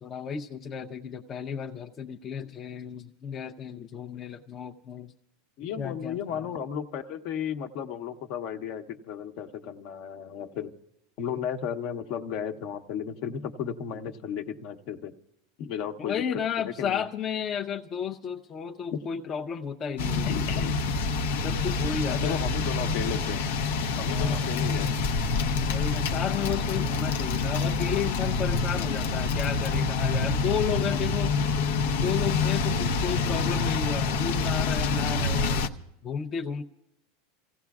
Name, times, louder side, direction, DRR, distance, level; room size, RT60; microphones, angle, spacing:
voice 1, 0.0-5.1 5.8-6.5 16.0-20.3 21.4-22.4 24.1-24.4 25.7-31.3 31.9-35.7 36.0-36.6, left 7 dB, 30° left, 4 dB, 0.6 m, -33 dB
voice 2, 5.6-10.7 11.2-15.1 15.6-16.2 16.7-17.0 18.9-19.0 20.2-20.8 22.1-23.4 24.0-25.1, left 8 dB, 55° left, 7 dB, 0.9 m, -34 dB
sound 1, 20.0-35.7, left 4 dB, 85° left, 0.8 m, -27 dB
30.0 x 15.5 x 2.4 m, 0.88 s
supercardioid pair, 130°, 0 cm